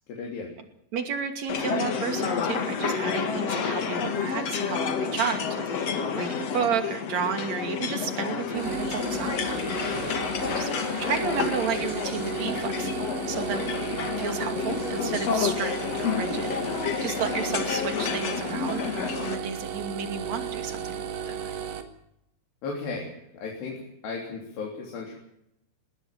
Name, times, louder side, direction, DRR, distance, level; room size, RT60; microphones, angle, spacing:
voice 1, 0.1-0.5 9.9-10.2 22.6-25.2, left 4 dB, 80° left, -1 dB, 5.5 m, -36 dB
voice 2, 0.9-9.4 10.5-10.7 11.0-21.3, right 6 dB, 45° right, 6 dB, 3.4 m, -32 dB
sound 1, 1.5-19.3, left 6 dB, 50° left, 2.4 m, -29 dB
sound 2, 8.5-21.8, right 7 dB, 80° right, 4.1 m, -35 dB
20.5 x 18.0 x 7.5 m, 0.78 s
omnidirectional pair, 4.8 m